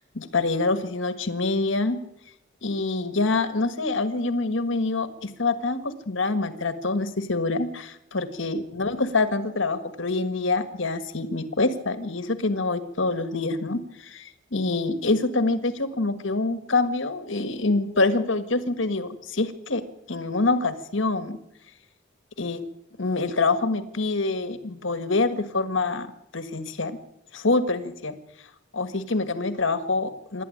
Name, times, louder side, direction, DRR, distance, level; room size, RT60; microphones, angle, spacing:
voice 1, 0.0-2.0 2.6-19.8 20.1-21.4 22.4-22.6 23.0-26.1 26.3-27.0 27.3-28.1 28.7-30.4, left 3 dB, 70° left, 10 dB, 1.7 m, -26 dB
26.5 x 12.0 x 8.7 m, 0.84 s
head